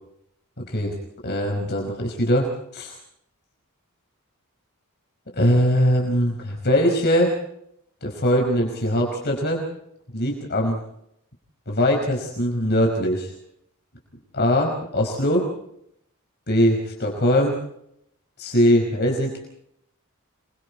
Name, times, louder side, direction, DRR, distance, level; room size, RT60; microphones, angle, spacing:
voice 1, 0.6-0.9 1.2-3.0 5.3-7.4 8.0-9.6 10.1-10.8 11.7-13.3 14.3-15.5 16.5-17.6 18.4-19.4, equal, 50° left, 1 dB, 5.0 m, -21 dB
27.0 x 23.5 x 4.3 m, 0.74 s
head